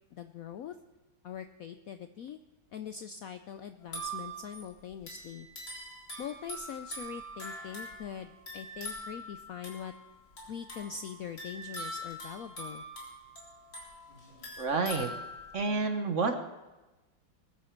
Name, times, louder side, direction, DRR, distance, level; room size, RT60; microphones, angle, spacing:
voice 1, 0.1-0.8 1.2-2.4 2.7-5.5 6.2-9.9 10.5-12.8, left 8 dB, 90° left, 9 dB, 0.7 m, -42 dB
sound 1, 3.8-15.7, equal, 55° left, 4.4 m, -43 dB
voice 2, 14.6-15.1 15.5-16.4, right 4 dB, 45° right, 7 dB, 1.1 m, -29 dB
20.5 x 11.5 x 4.5 m, 1.1 s
omnidirectional pair, 2.2 m